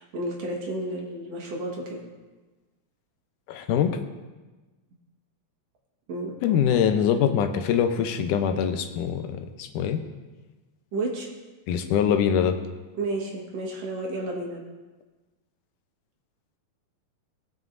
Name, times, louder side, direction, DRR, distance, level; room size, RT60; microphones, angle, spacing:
voice 1, 0.0-2.0 6.1-6.6 10.9-11.3 13.0-14.7, right 2 dB, 60° right, -1 dB, 2.4 m, -32 dB
voice 2, 3.5-4.0 6.4-10.0 11.7-12.6, left 8 dB, 85° left, 7 dB, 2.3 m, -23 dB
19.0 x 7.4 x 2.6 m, 1.2 s
omnidirectional pair, 3.6 m